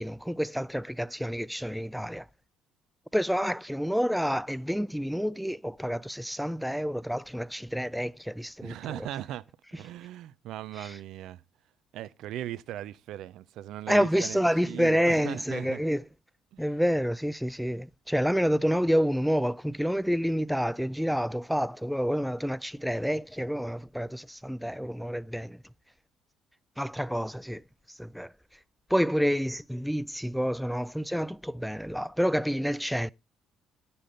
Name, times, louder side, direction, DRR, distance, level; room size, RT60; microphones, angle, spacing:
voice 1, 0.0-2.3 3.1-9.1 10.8-11.0 13.9-16.0 16.6-25.6 26.8-27.6 28.0-28.3 28.9-33.1, equal, ahead, 0.4 m, -28 dB
voice 2, 8.6-9.4 9.7-11.4 11.9-15.8 16.5-16.6, right 12 dB, 70° right, 0.5 m, -38 dB
9.8 x 6.9 x 3.8 m
hypercardioid pair, 60°, 0 cm